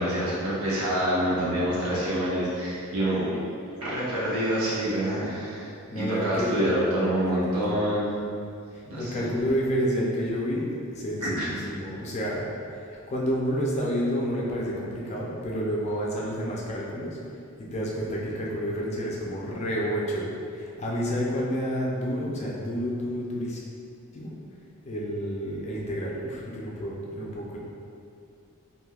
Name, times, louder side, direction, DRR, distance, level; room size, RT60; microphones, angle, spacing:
voice 1, 0.0-3.4 3.8-8.1 8.8-9.3 11.2-11.5, equal, 85° right, -8 dB, 0.9 m, -27 dB
voice 2, 5.9-6.5 8.7-17.2 17.7-23.6 24.1-24.4 24.8-27.6, equal, 30° left, -3 dB, 0.3 m, -29 dB
3.2 x 2.6 x 2.3 m, 2.5 s
head